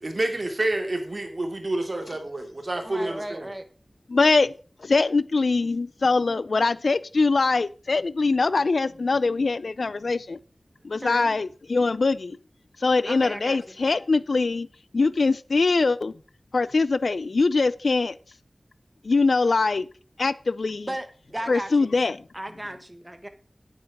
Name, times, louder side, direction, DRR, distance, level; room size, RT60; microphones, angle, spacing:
voice 1, 0.0-3.5, right 2 dB, 55° right, 2.8 m, -28 dB
voice 2, 2.8-3.7 11.0-11.3 13.0-13.7 20.9-21.9 22.3-23.3, right 1 dB, 20° right, 1.4 m, -35 dB
voice 3, 4.1-4.5 4.8-10.4 10.8-12.4 12.8-14.7 14.9-16.1 16.5-18.2 19.0-19.9 20.2-20.9 21.5-22.2, left 3 dB, 85° left, 0.5 m, -22 dB
9.5 x 8.7 x 5.0 m
wide cardioid pair, 50°, 0 cm